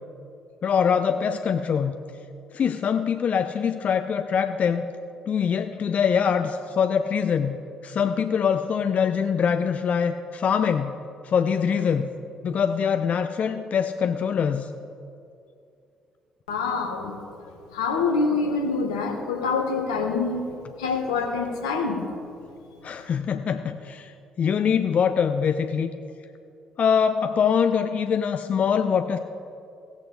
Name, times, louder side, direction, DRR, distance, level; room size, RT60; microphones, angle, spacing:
voice 1, 0.6-2.0 2.5-4.8 5.3-7.6 7.8-10.9 11.2-12.1 12.4-14.7 22.8-24.1 24.4-25.9 26.8-29.2, left 7 dB, 50° left, 8 dB, 0.5 m, -23 dB
voice 2, 16.5-17.2 17.7-20.5 20.8-22.1, left 4 dB, 80° left, 3 dB, 1.2 m, -26 dB
16.5 x 8.3 x 3.8 m, 2.5 s
figure-of-eight pair, 45°, 3 cm